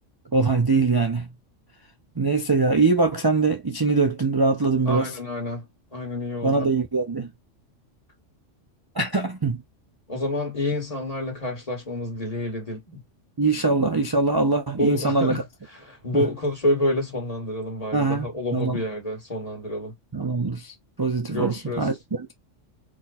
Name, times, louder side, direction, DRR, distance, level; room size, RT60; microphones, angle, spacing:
voice 1, 0.3-1.3 2.2-5.1 6.4-7.3 9.0-9.6 13.4-15.4 16.1-16.2 17.9-18.8 20.1-22.3, right 3 dB, 30° right, 0.4 m, -23 dB
voice 2, 4.9-6.7 10.1-13.0 14.8-15.4 15.7-19.9 21.3-21.9, left 1 dB, 30° left, 2.0 m, -28 dB
4.4 x 2.5 x 4.1 m
omnidirectional pair, 1.3 m